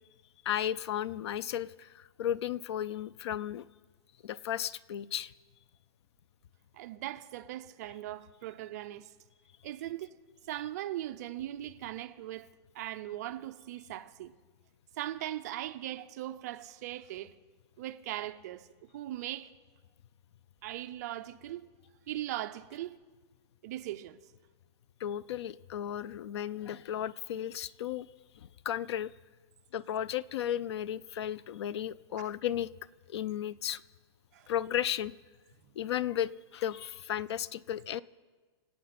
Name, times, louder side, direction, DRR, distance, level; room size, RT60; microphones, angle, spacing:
voice 1, 0.5-3.6 4.2-5.3 25.0-28.1 28.4-29.1 29.7-32.7 33.1-33.8 34.5-35.1 35.8-38.0, left 10 dB, 70° left, 0.4 m, -34 dB
voice 2, 6.7-9.1 9.6-10.1 10.5-12.5 12.7-14.3 15.0-17.4 17.8-18.7 18.9-19.5 20.6-21.7 22.1-23.0 23.6-24.2 32.2-32.3 34.3-34.5, right 14 dB, 35° right, 0.5 m, -39 dB
25.0 x 8.5 x 5.9 m
supercardioid pair, 175°, 15 cm